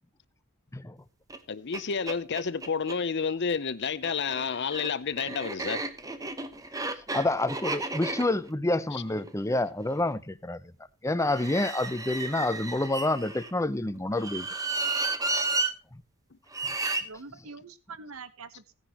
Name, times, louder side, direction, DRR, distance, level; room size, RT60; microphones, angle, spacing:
sound 1, 1.3-1.4 1.7-1.8 2.1-3.0 3.9-10.1 11.2-13.5 14.1-15.7 16.5-17.0, right 3 dB, 15° right, 1.0 m, -33 dB
voice 1, 1.5-5.8, left 5 dB, 50° left, 0.7 m, -30 dB
voice 2, 7.1-10.6 11.0-14.5 15.9-16.0, left 2 dB, 15° left, 0.7 m, -28 dB
voice 3, 16.9-18.7, right 4 dB, 70° right, 1.1 m, -45 dB
16.5 x 10.0 x 3.0 m
head